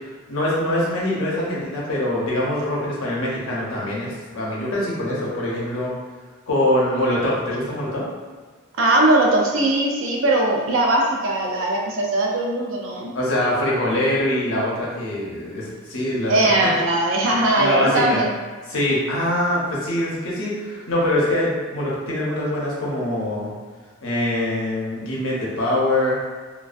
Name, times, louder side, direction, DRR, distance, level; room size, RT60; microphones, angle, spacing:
voice 1, 0.3-5.9 6.5-8.1 13.1-16.8 17.3-18.2 18.7-23.5 24.0-26.2, left 1 dB, 70° left, -5 dB, 0.7 m, -23 dB
voice 2, 8.8-13.1 16.3-18.3, right 2 dB, 60° right, -1 dB, 0.4 m, -20 dB
2.3 x 2.2 x 2.4 m, 1.5 s
head